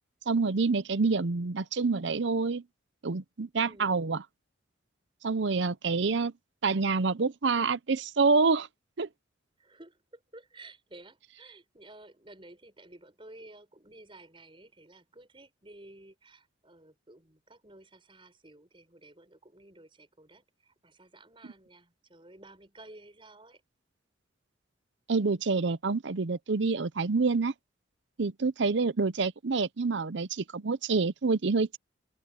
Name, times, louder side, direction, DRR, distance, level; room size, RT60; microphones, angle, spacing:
voice 1, 0.3-2.6 3.0-4.2 5.2-6.3 6.6-8.7 9.0-9.1 25.1-27.5 28.2-31.8, right 4 dB, 65° right, 0.7 m, -27 dB
voice 2, 3.7-4.1 9.6-23.6, right 2 dB, 25° right, 5.4 m, -53 dB
head